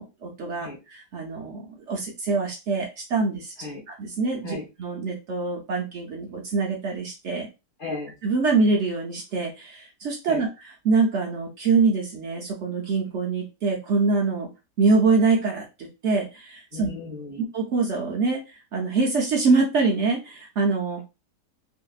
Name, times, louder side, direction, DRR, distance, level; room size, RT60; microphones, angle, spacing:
voice 1, 0.0-3.5 3.9-7.5 8.2-14.5 14.8-16.9 17.5-21.0, right 4 dB, 65° right, 0 dB, 0.7 m, -24 dB
voice 2, 7.8-8.1 10.3-10.4 16.7-17.4, left 3 dB, 35° left, -3 dB, 1.0 m, -35 dB
2.7 x 2.6 x 2.3 m, 0.27 s
omnidirectional pair, 1.8 m